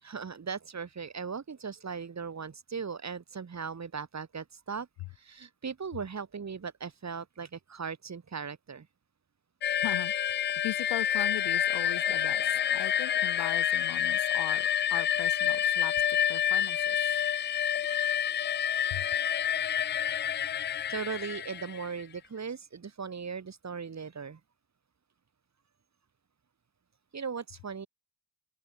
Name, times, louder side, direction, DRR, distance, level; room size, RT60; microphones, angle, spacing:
voice 1, 0.0-4.9 5.2-8.9 17.8-18.0 20.9-24.4 27.1-27.9, right 6 dB, 40° right, 6.4 m, -38 dB
sound 1, 9.6-22.0, left 10 dB, 25° left, 0.3 m, -28 dB
voice 2, 9.8-10.3 10.6-15.9 16.3-17.0 18.9-19.1, left 21 dB, 75° left, 1.2 m, -39 dB
open air
supercardioid pair, 65°, 43 cm